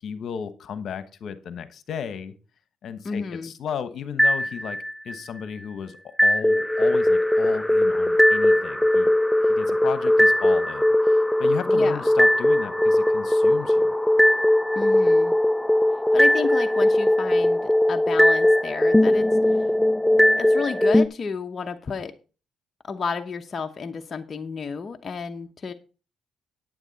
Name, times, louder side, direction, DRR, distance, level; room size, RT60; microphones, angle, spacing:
voice 1, 0.0-2.3 2.8-4.8 5.0-9.1 9.4-13.9, left 7 dB, 65° left, 12 dB, 1.1 m, -35 dB
voice 2, 3.0-3.5 11.7-12.0 14.8-15.3 16.1-19.3 20.4-22.1 22.8-25.7, left 5 dB, 40° left, 5 dB, 0.9 m, -31 dB
sound 1, 4.2-5.2 6.2-21.1, left 1 dB, 5° left, 0.5 m, -19 dB
9.8 x 9.1 x 4.1 m, 0.35 s
cardioid pair, 90°, 0 cm